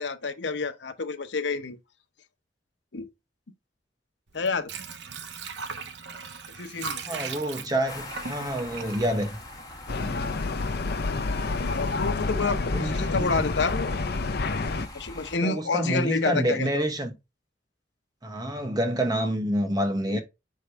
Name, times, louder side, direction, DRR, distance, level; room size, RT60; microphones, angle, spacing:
voice 1, 0.0-1.8 2.9-3.1 4.3-4.7 6.6-7.0 9.9-10.4 11.5-14.0 14.9-16.8 20.1-20.2, left 4 dB, 90° left, 0.8 m, -29 dB
Water / Sink (filling or washing), 4.3-10.2 10.5-10.6, right 5 dB, 85° right, 0.9 m, -38 dB
voice 2, 7.0-9.4 10.0-10.2 12.3-13.5 15.4-17.1 18.2-20.2, right 1 dB, 25° right, 1.1 m, -28 dB
sound 1, 7.9-15.4, left 1 dB, 20° left, 1.5 m, -42 dB
sound 2, 9.9-14.9, left 3 dB, 60° left, 0.6 m, -28 dB
6.0 x 4.7 x 3.3 m
head